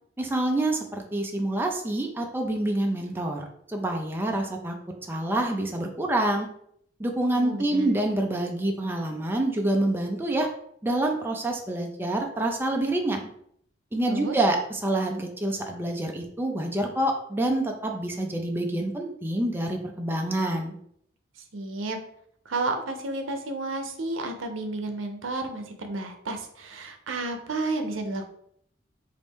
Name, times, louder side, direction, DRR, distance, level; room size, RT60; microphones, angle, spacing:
voice 1, 0.2-4.8 5.1-6.5 7.0-10.5 10.8-13.3 13.9-20.7, right 1 dB, 10° right, 2 dB, 0.4 m, -27 dB
voice 2, 7.3-7.9 14.1-14.4 21.5-22.0 22.5-28.2, right 2 dB, 80° right, 5 dB, 0.6 m, -31 dB
4.1 x 2.6 x 3.5 m, 0.68 s
head